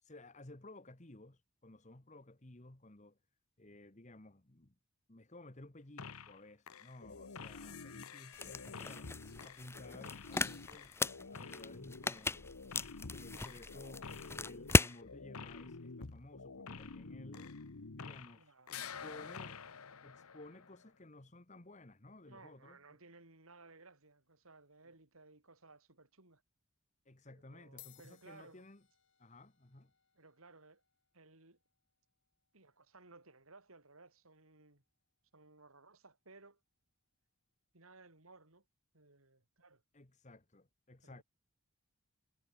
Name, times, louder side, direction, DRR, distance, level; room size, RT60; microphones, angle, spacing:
voice 1, 0.0-3.2 3.6-4.7 5.1-11.0 11.3-12.5 13.1-14.1 14.4-17.5 17.9-19.6 20.0-22.8 27.0-28.8 29.2-29.9 39.9-41.2, left 2 dB, 35° left, 1.5 m, -55 dB
sound 1, 6.0-6.4 6.7-18.4 18.7-20.9, left 5 dB, 85° left, 1.1 m, -49 dB
sound 2, 8.3-15.0, left 2 dB, 10° left, 0.5 m, -36 dB
voice 2, 18.4-18.8 22.2-26.4 27.3-28.6 30.2-30.8 31.1-31.6 32.5-34.8 35.3-36.6 37.7-38.6 38.9-39.8 41.0-41.2, right 3 dB, 75° right, 3.7 m, -60 dB
sound 3, 26.2-26.4 27.3-27.4 27.6-36.3, left 16 dB, 55° left, 3.2 m, -67 dB
head